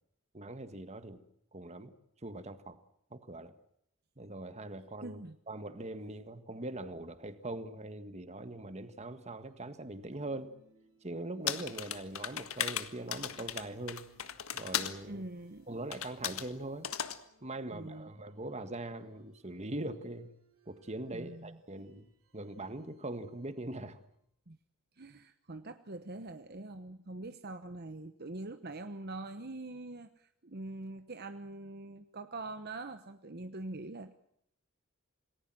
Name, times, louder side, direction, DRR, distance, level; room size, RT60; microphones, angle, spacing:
voice 1, 0.3-1.2 1.5-1.9 2.2-2.8 3.1-3.5 4.2-5.2 5.5-10.5 11.0-14.1 14.5-15.2 15.7-16.9 17.4-20.3 20.7-24.0, right 2 dB, 30° right, 10 dB, 1.6 m, -42 dB
voice 2, 5.0-5.3 15.1-15.7 17.7-18.1 21.1-21.6 24.5-24.6 25.0-34.1, right 2 dB, 50° right, 9 dB, 1.1 m, -44 dB
sound 1, 9.1-24.2, right 2 dB, 85° right, 7.9 m, -67 dB
sound 2, 11.5-15.0 15.9-16.5 16.8-17.2, left 9 dB, 85° left, 1.6 m, -36 dB
28.0 x 19.5 x 7.7 m, 0.73 s
head